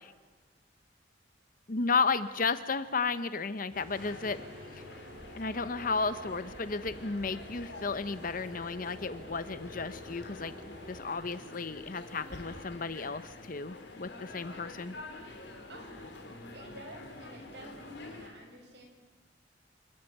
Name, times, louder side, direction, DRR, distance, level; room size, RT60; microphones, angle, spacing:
voice 1, 1.7-4.4 4.7-4.8 5.3-10.5 10.9-14.9, left 4 dB, 45° left, 13 dB, 0.8 m, -33 dB
sound 1, 3.7-11.0, equal, 50° right, 3.8 m, -50 dB
sound 2, 3.9-18.3, left 2 dB, 65° left, 3.8 m, -47 dB
voice 2, 15.7-16.1 16.5-18.9, right 1 dB, 65° right, 1 dB, 6.3 m, -50 dB
27.5 x 13.5 x 9.3 m, 1.4 s
head